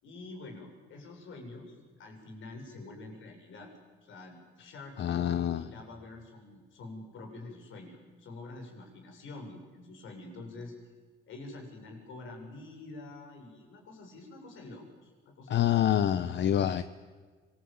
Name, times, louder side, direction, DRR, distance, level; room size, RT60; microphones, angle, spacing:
voice 1, 0.0-3.7 4.0-10.7 11.3-15.7, left 2 dB, 80° left, 3 dB, 7.4 m, -46 dB
voice 2, 5.0-5.6 15.5-16.8, left 10 dB, 65° left, 12 dB, 1.0 m, -26 dB
26.5 x 22.0 x 9.0 m, 1.4 s
cardioid pair, 90°, 20 cm